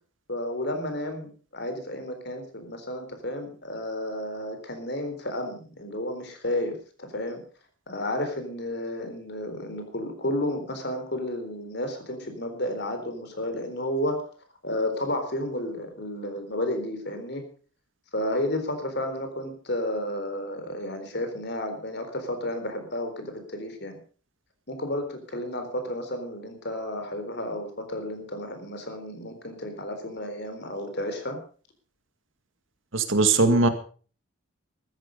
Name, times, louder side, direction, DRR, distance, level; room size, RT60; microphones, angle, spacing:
voice 1, 0.3-7.4 7.9-14.2 14.6-17.4 18.1-24.0 24.7-31.4, left 1 dB, 55° left, 7 dB, 3.9 m, -32 dB
voice 2, 32.9-33.7, right 3 dB, 65° right, 8 dB, 2.1 m, -20 dB
15.0 x 13.5 x 5.3 m, 0.40 s
head